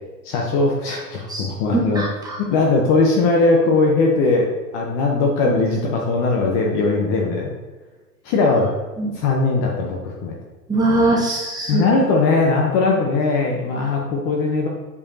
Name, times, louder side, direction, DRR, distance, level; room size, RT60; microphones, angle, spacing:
voice 1, 0.2-2.0 2.4-7.5 8.2-8.7 9.1-10.4 11.7-14.7, left 3 dB, 30° left, 0 dB, 0.9 m, -19 dB
voice 2, 1.3-2.4 5.5-5.6 9.0-9.2 10.7-11.8, right 2 dB, 10° right, -4 dB, 1.4 m, -22 dB
8.4 x 5.0 x 2.8 m, 1.3 s
hypercardioid pair, 120°, 49 cm